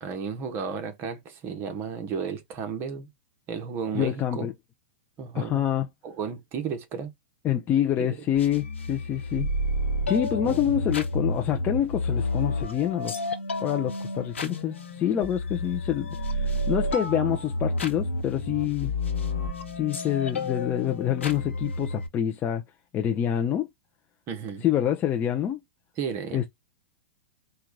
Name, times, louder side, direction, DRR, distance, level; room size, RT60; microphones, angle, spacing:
voice 1, 0.0-3.1 3.5-4.5 5.2-5.7 6.0-7.1 8.0-8.1 10.5-10.8 24.3-24.6 26.0-26.5, right 6 dB, 35° right, 1.0 m, -33 dB
voice 2, 3.9-4.5 5.3-5.9 7.4-9.5 10.1-13.2 13.6-18.9 19.7-22.6 22.9-23.7 24.6-25.6 26.3-26.5, left 10 dB, 30° left, 0.6 m, -26 dB
sound 1, 8.4-22.1, left 1 dB, 85° left, 1.1 m, -30 dB
4.5 x 2.3 x 3.8 m
hypercardioid pair, 105°, 6 cm